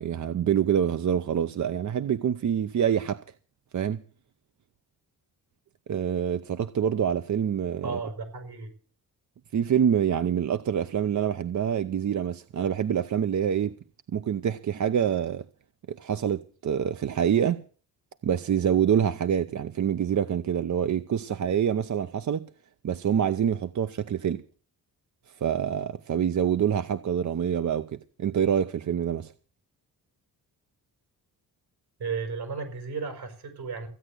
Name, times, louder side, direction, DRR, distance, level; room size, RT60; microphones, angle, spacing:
voice 1, 0.0-3.2 3.7-4.0 5.9-8.0 9.5-13.7 14.1-15.4 15.9-17.6 18.2-22.5 22.8-24.4 25.3-29.3, right 8 dB, 50° right, 0.7 m, -26 dB
voice 2, 7.8-8.7 32.0-33.9, right 4 dB, 75° right, 5.8 m, -34 dB
15.5 x 8.9 x 8.0 m
cardioid pair, 85°, 38 cm